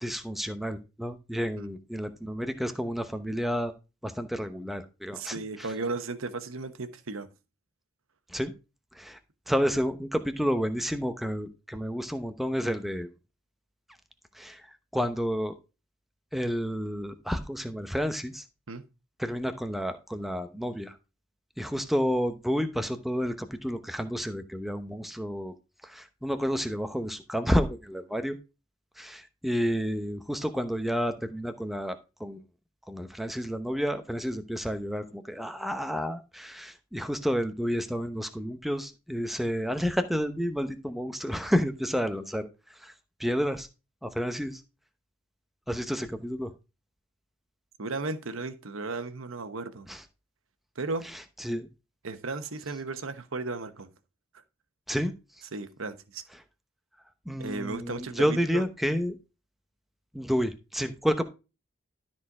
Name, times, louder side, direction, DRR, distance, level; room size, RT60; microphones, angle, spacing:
voice 1, 0.0-3.7 4.0-5.7 8.3-8.5 8.9-9.2 9.5-13.1 14.3-14.6 14.9-15.6 16.3-18.4 19.2-21.0 21.6-25.5 25.8-28.4 29.0-32.4 32.9-42.5 42.8-42.9 43.2-43.7 44.0-44.6 45.7-46.5 49.9-50.0 51.1-51.7 54.9-55.1 57.3-59.2 60.1-61.2, equal, ahead, 0.8 m, -30 dB
voice 2, 5.1-7.3 18.7-18.8 47.8-49.9 50.8-51.1 52.0-53.9 55.5-56.2 57.4-58.6, right 3 dB, 85° right, 1.0 m, -35 dB
12.5 x 4.3 x 4.7 m
head